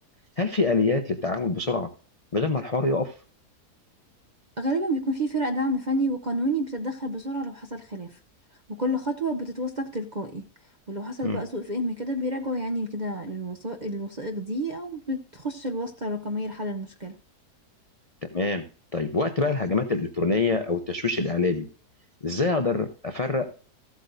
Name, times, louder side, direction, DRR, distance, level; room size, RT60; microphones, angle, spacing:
voice 1, 0.4-1.9 2.3-3.1 11.2-11.4 18.2-21.7 22.2-23.5, left 3 dB, 40° left, 0.5 m, -25 dB
voice 2, 4.6-8.2 8.8-10.5 10.9-17.2, equal, 40° right, 0.6 m, -29 dB
14.5 x 8.3 x 2.6 m
omnidirectional pair, 1.7 m